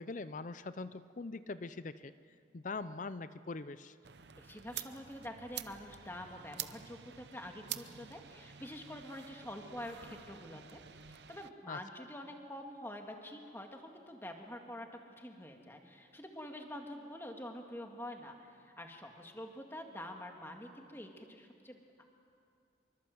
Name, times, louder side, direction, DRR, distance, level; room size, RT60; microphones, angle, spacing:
voice 1, 0.0-2.1 2.5-4.0 11.7-11.8, left 3 dB, 40° left, 14 dB, 0.5 m, -42 dB
sound 1, 4.0-11.5, right 10 dB, 60° right, 0.8 m, -48 dB
voice 2, 4.3-10.8 11.1-14.9 15.2-21.8, left 1 dB, 10° left, 3 dB, 2.0 m, -47 dB
26.5 x 23.5 x 7.8 m, 2.4 s
head